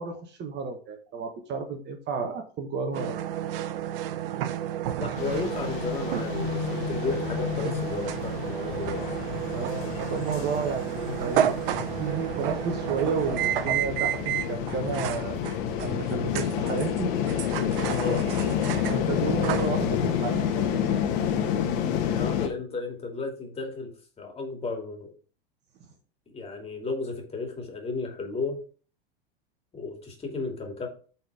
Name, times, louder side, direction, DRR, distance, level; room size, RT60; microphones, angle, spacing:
voice 1, 0.0-3.2 9.5-15.4 15.8-17.4 17.8-18.2 18.9-20.7, right 5 dB, 35° right, 5 dB, 1.3 m, -32 dB
sound 1, 2.9-21.9, right 11 dB, 65° right, 0.8 m, -32 dB
voice 2, 5.0-9.0 17.9-18.3 22.1-23.9 24.2-25.1 26.3-28.6 29.7-30.9, left 4 dB, 20° left, 2 dB, 2.6 m, -33 dB
sound 2, 5.2-22.5, left 8 dB, 55° left, 1.7 m, -29 dB
8.4 x 4.3 x 4.9 m, 0.41 s
hypercardioid pair, 110°, 31 cm